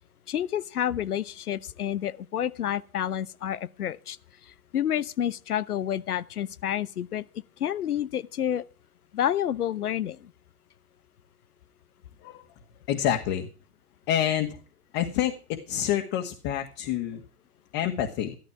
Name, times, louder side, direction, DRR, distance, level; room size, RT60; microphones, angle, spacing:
voice 1, 0.3-4.2 4.7-7.2 7.6-8.6 9.1-10.3, left 10 dB, 85° left, 1.0 m, -29 dB
voice 2, 12.9-13.5 14.1-14.6 14.9-17.2 17.7-18.4, left 10 dB, 40° left, 1.9 m, -27 dB
13.5 x 13.0 x 4.8 m
hypercardioid pair, 115°, 44 cm